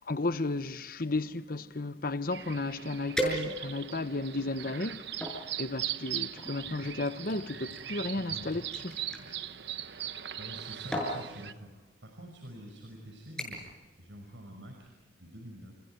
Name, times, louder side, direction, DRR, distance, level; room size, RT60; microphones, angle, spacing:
voice 1, 0.1-5.0 5.6-8.6, left 2 dB, 50° left, 1.1 m, -33 dB
sound 1, 2.3-11.5, right 11 dB, 65° right, 1.0 m, -40 dB
sound 2, 3.2-3.9 4.5-5.4 6.4-9.3 10.4-10.6 10.9-11.2 12.1-12.3 12.7-13.0 13.4-13.8 14.1-14.5 14.8-14.9, right 1 dB, 5° left, 6.7 m, -37 dB
voice 2, 10.4-15.8, equal, 90° right, 5.6 m, -47 dB
30.0 x 29.5 x 4.6 m
head